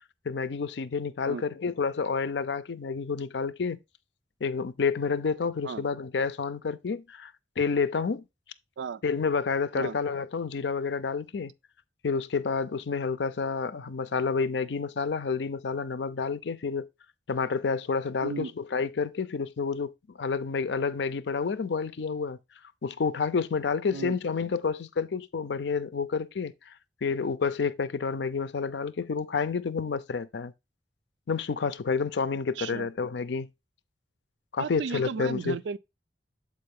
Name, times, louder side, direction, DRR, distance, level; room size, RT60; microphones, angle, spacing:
voice 1, 0.3-3.8 4.4-8.2 9.0-11.5 12.0-16.9 17.3-19.9 20.2-22.4 22.8-26.7 27.0-30.5 31.3-33.5 34.5-35.6, left 5 dB, 75° left, 0.5 m, -29 dB
voice 2, 18.2-18.5 23.9-24.2 32.6-32.9 34.6-35.8, right 5 dB, 85° right, 0.4 m, -35 dB
7.5 x 4.3 x 3.6 m
head